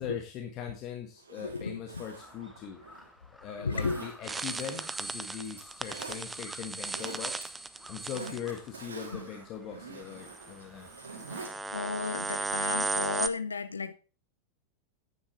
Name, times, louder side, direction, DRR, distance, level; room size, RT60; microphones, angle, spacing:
voice 1, 0.0-2.8 3.3-7.5 7.9-10.9, left 8 dB, 35° left, 1.6 m, -40 dB
Zipper (clothing), 1.2-3.1 3.7-5.1 5.5-6.2 6.7-7.4 7.8-11.5 11.9-12.0, right 4 dB, 70° right, 3.1 m, -46 dB
voice 2, 1.4-1.8 3.6-4.0 8.1-8.4 9.1-9.3 11.7-13.9, left 4 dB, 75° left, 0.8 m, -34 dB
Crow, 2.1-11.9, left 1 dB, 5° left, 1.1 m, -55 dB
sound 1, 4.2-8.6 10.3-10.5 11.0-13.3, right 3 dB, 10° right, 0.7 m, -35 dB
10.5 x 9.5 x 3.2 m
figure-of-eight pair, 90°, 0 cm